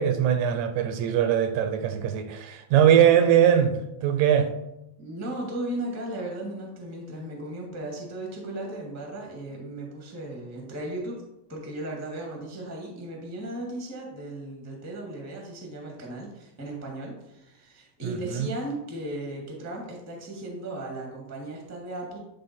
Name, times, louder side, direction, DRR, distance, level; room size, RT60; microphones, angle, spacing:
voice 1, 0.0-4.5 18.0-18.5, right 9 dB, 80° right, 1.9 m, -21 dB
voice 2, 5.0-11.2 11.5-22.2, right 1 dB, 10° right, 0.8 m, -36 dB
11.0 x 3.7 x 4.2 m
omnidirectional pair, 3.5 m